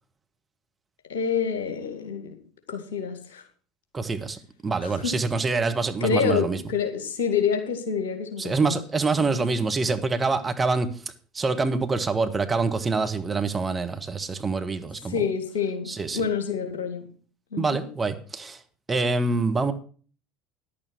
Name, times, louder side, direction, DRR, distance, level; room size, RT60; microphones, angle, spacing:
voice 1, 1.1-2.3 2.7-3.4 4.8-5.2 6.0-8.8 9.2-9.4 15.1-17.1 17.5-17.8, left 6 dB, 70° left, 6 dB, 2.1 m, -27 dB
voice 2, 3.9-6.6 8.4-10.9 11.3-15.2 15.9-16.2 17.6-18.6 18.9-19.7, right 3 dB, 20° right, 8 dB, 1.5 m, -25 dB
11.0 x 8.6 x 6.0 m, 0.40 s
figure-of-eight pair, 70°, 0 cm